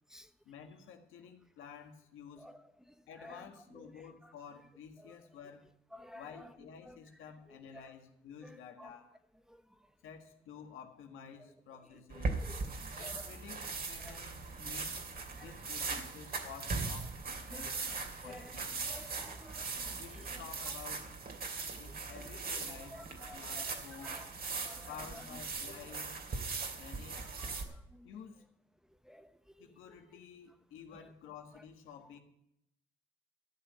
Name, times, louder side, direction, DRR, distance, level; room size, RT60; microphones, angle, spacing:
voice 1, 0.5-2.5 3.1-5.7 6.1-9.1 10.0-12.4 13.0-15.0 15.4-17.8 18.2-18.7 20.0-21.0 21.8-24.2 24.9-26.1 26.8-27.3 28.0-28.5 29.6-32.2, left 7 dB, 90° left, 1.8 m, -51 dB
voice 2, 2.3-4.3 5.0-5.2 5.9-7.0 7.5-7.9 8.4-9.0 9.5-9.9 11.7-13.6 14.0-14.2 14.8-14.9 15.3-15.6 15.9-16.1 17.5-20.7 21.4-21.5 21.9-24.3 24.5-25.4 25.6-25.9 26.5-28.1 28.9-30.2 30.9-31.1 31.5-31.7, left 1 dB, 5° right, 0.9 m, -55 dB
sound 1, 12.1-27.6, right 4 dB, 50° right, 2.6 m, -40 dB
14.0 x 6.5 x 8.7 m
cardioid pair, 90°, 20 cm